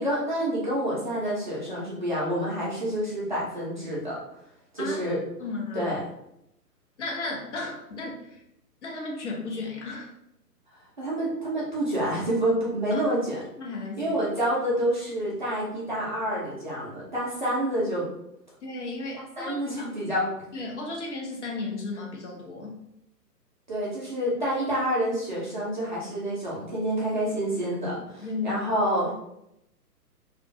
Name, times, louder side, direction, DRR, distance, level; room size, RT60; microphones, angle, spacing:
voice 1, 0.0-4.2 4.7-5.2 5.7-6.0 10.8-13.4 14.0-18.1 19.1-20.3 23.7-29.1, right 1 dB, 30° right, -7 dB, 0.5 m, -28 dB
voice 2, 5.4-5.9 7.0-8.4 8.8-10.1 12.9-13.0 13.6-14.2 18.6-19.6 20.5-22.7 28.2-28.6, left 3 dB, 45° left, -2 dB, 0.7 m, -34 dB
2.4 x 2.2 x 2.5 m, 0.81 s
figure-of-eight pair, 130°, 49 cm